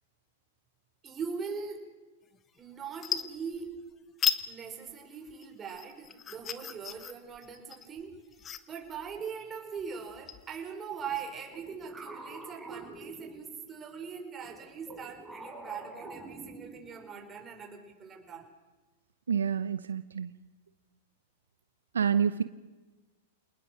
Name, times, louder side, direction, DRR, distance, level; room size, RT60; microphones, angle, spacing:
voice 1, 1.0-1.9 2.6-3.7 4.5-8.1 8.7-18.5, right 6 dB, 25° right, 3 dB, 5.3 m, -41 dB
sound 1, 2.3-2.6 2.9-3.8 4.2-4.5 4.8-11.4, left 8 dB, 25° left, 1.3 m, -36 dB
sound 2, 11.0-13.8 14.4-17.1, right 2 dB, 5° right, 6.1 m, -46 dB
voice 2, 19.3-20.3 21.9-22.4, right 7 dB, 85° right, 13 dB, 0.8 m, -28 dB
28.0 x 20.0 x 6.5 m, 1.2 s
hypercardioid pair, 115°, 0 cm